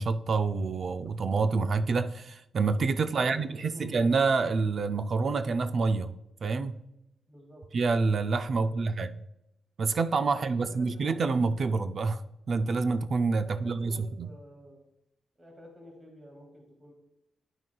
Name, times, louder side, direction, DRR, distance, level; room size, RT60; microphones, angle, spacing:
voice 1, 0.0-6.1 6.4-6.8 7.7-9.1 9.8-12.2 12.5-14.3, right 4 dB, 45° right, 0.3 m, -27 dB
voice 2, 3.2-4.1 7.3-7.6 8.6-8.8 10.3-11.3 13.4-14.9 15.4-16.9, equal, 25° right, 2.0 m, -50 dB
10.5 x 6.0 x 2.3 m
cardioid pair, 120°, 0 cm